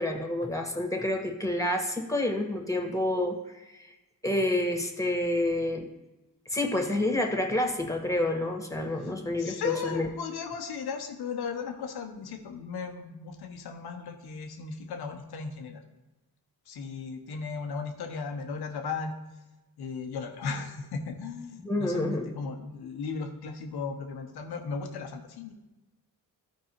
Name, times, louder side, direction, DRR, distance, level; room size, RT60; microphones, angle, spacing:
voice 1, 0.0-3.9 4.2-5.9 6.5-10.1 21.6-22.3, left 1 dB, 10° left, 2 dB, 1.8 m, -28 dB
voice 2, 9.4-15.8 16.7-19.2 19.8-25.5, left 5 dB, 85° left, 5 dB, 1.0 m, -36 dB
13.0 x 4.7 x 3.1 m, 1.1 s
supercardioid pair, 50°, 38 cm